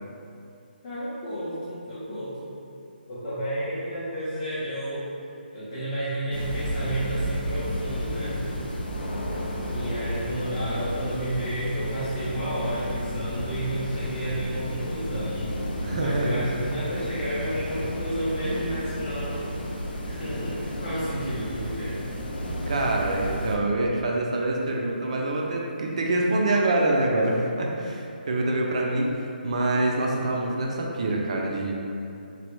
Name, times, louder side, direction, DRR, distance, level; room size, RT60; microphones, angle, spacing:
voice 1, 0.8-2.5 3.1-5.0 5.5-8.4 9.6-19.4 20.1-22.0, right 1 dB, 20° left, -13 dB, 0.5 m, -31 dB
sound 1, 6.3-23.6, equal, 75° left, 0.5 m, -32 dB
voice 2, 15.8-16.4 22.7-29.1 29.4-31.7, right 2 dB, 40° right, -1 dB, 0.3 m, -25 dB
3.1 x 2.2 x 3.0 m, 2.6 s
hypercardioid pair, 170°, 5 cm